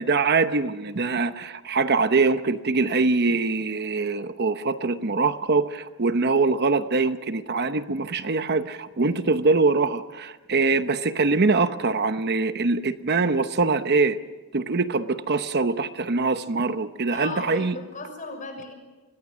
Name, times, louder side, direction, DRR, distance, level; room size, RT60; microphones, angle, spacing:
voice 1, 0.0-14.2 14.5-17.8, right 3 dB, 55° right, 10 dB, 0.9 m, -23 dB
voice 2, 17.1-18.7, left 3 dB, 40° left, 5 dB, 6.4 m, -36 dB
25.0 x 21.5 x 6.3 m, 1.2 s
head